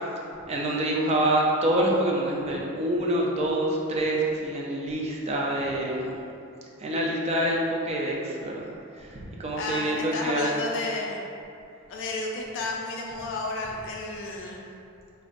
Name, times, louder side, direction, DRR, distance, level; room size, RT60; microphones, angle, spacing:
voice 1, 0.5-6.1 6.8-8.7 9.0-10.5, right 1 dB, 30° right, -3 dB, 0.4 m, -26 dB
voice 2, 9.6-11.2 11.9-14.6, left 2 dB, 60° left, -1 dB, 0.3 m, -32 dB
3.7 x 2.1 x 2.4 m, 2.7 s
head